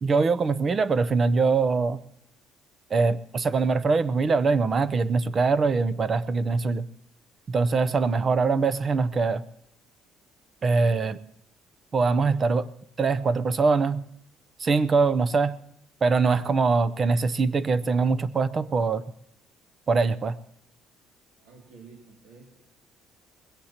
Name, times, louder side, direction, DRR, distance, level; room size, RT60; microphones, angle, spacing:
voice 1, 0.0-2.0 2.9-6.9 7.5-9.4 10.6-11.2 11.9-12.7 13.0-14.0 14.6-15.6 16.0-19.0 19.9-20.4, right 4 dB, 30° right, 16 dB, 0.6 m, -23 dB
voice 2, 21.4-22.6, right 4 dB, 85° right, 0 dB, 2.5 m, -50 dB
20.5 x 17.0 x 2.9 m, 0.76 s
cardioid pair, 145°, 0 cm